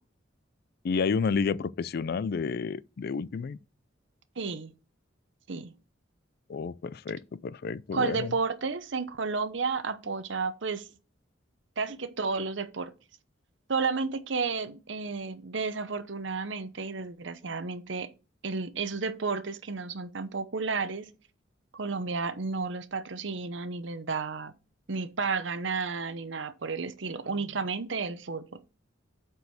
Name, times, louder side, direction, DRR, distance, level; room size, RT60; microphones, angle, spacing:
voice 1, 0.8-3.6 6.5-8.3, left 5 dB, 55° left, 0.4 m, -30 dB
voice 2, 4.4-4.7 5.5-5.7 7.9-10.9 11.8-12.9 13.7-18.1 18.4-21.1 21.7-24.5 24.9-28.6, right 4 dB, 70° right, 0.8 m, -32 dB
7.8 x 4.6 x 7.0 m
head